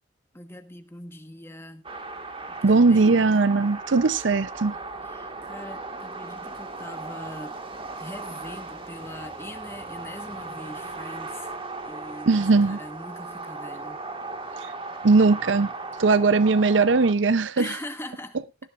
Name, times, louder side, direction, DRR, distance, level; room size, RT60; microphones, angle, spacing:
voice 1, 0.3-1.9 2.5-3.2 5.0-7.6 8.0-11.5 11.8-14.0 17.5-18.4, left 1 dB, 15° left, 1.3 m, -41 dB
sound 1, 1.8-17.1, right 3 dB, 30° right, 1.7 m, -37 dB
voice 2, 2.6-4.8 12.3-12.8 14.6-14.7 15.0-15.7 16.0-17.7, right 3 dB, 80° right, 0.6 m, -19 dB
18.0 x 11.0 x 2.5 m
head